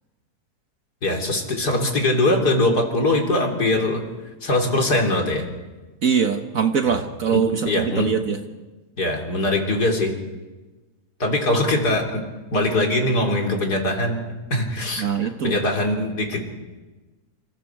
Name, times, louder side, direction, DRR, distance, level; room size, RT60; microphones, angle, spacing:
voice 1, 1.0-4.0 4.4-5.5 6.9-7.0 7.3-8.1 9.0-10.1 11.2-12.2 12.5-16.4, left 1 dB, 75° left, 1 dB, 4.1 m, -22 dB
voice 2, 6.0-8.4 15.0-15.5, right 7 dB, 60° right, 6 dB, 1.5 m, -22 dB
28.0 x 27.5 x 4.7 m, 1.2 s
omnidirectional pair, 1.7 m